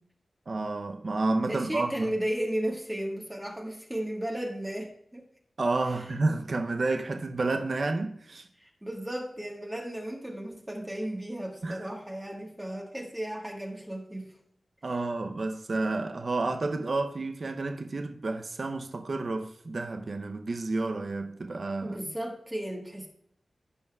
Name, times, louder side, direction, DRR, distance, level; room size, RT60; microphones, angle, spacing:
voice 1, 0.5-2.2 5.6-8.5 11.6-11.9 14.8-22.0, right 3 dB, 55° right, 0.6 m, -30 dB
voice 2, 1.4-5.2 5.9-6.1 8.6-14.4 21.8-23.1, right 1 dB, 10° right, 1.4 m, -34 dB
15.5 x 5.5 x 2.3 m
wide cardioid pair, 90°, 0 cm